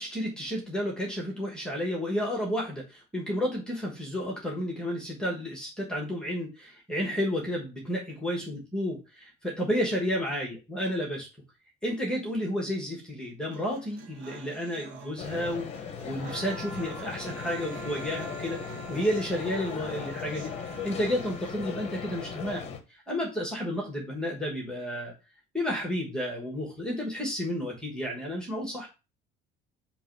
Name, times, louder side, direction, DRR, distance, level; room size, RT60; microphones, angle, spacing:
voice 1, 0.0-11.3 11.8-15.7 16.0-25.1 25.5-28.9, equal, 5° left, -1 dB, 1.2 m, -31 dB
sound 1, 13.5-21.5, right 6 dB, 80° right, 1.2 m, -48 dB
sound 2, 15.2-22.8, left 7 dB, 35° left, 0.8 m, -38 dB
Trumpet, 16.2-22.6, right 2 dB, 15° right, 0.6 m, -47 dB
6.1 x 3.0 x 5.2 m, 0.29 s
cardioid pair, 175°, 19 cm